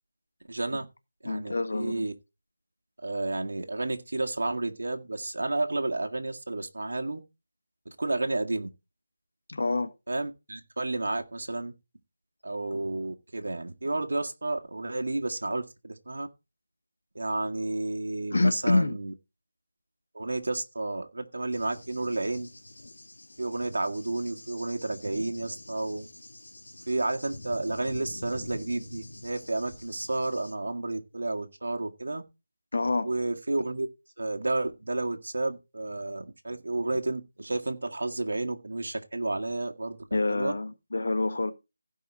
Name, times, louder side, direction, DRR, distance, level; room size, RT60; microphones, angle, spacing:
voice 1, 0.5-0.9 1.2-2.1 3.0-7.2 7.9-8.7 10.1-11.7 12.4-16.3 17.2-19.1 20.1-22.5 23.4-26.1 26.9-32.2 33.0-33.9 34.2-40.0 40.3-40.5, right 2 dB, 70° right, 1.8 m, -31 dB
voice 2, 1.2-2.1 9.5-9.9 18.3-19.0 32.7-33.1 40.1-41.5, left 2 dB, 60° left, 1.4 m, -27 dB
Cricket / Thunder, 21.5-30.5, left 1 dB, 80° left, 2.0 m, -46 dB
16.0 x 5.5 x 4.3 m
figure-of-eight pair, 175°, 0 cm